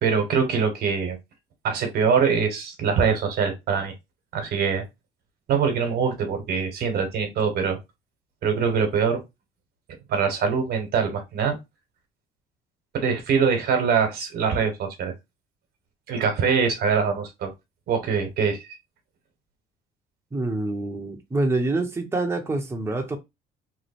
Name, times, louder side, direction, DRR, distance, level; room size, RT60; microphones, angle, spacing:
voice 1, 0.0-1.2 1.6-3.9 4.3-4.8 5.5-7.8 8.4-9.2 10.1-11.6 12.9-15.1 16.1-17.5 17.9-18.8, right 6 dB, 70° right, 1.3 m, -23 dB
voice 2, 20.3-23.2, right 2 dB, 15° right, 0.8 m, -26 dB
3.1 x 2.1 x 4.2 m
cardioid pair, 110°, 17 cm